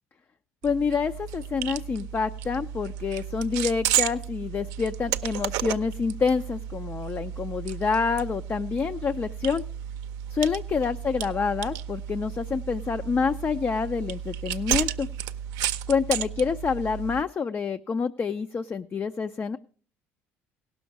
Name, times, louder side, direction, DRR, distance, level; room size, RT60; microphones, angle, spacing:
voice 1, 0.6-9.6 10.3-15.1 15.9-19.6, left 5 dB, 30° left, 9 dB, 0.5 m, -27 dB
sound 1, 0.6-17.2, right 11 dB, 65° right, 0.5 m, -33 dB
17.0 x 6.3 x 4.6 m, 0.43 s
hypercardioid pair, 65°, 7 cm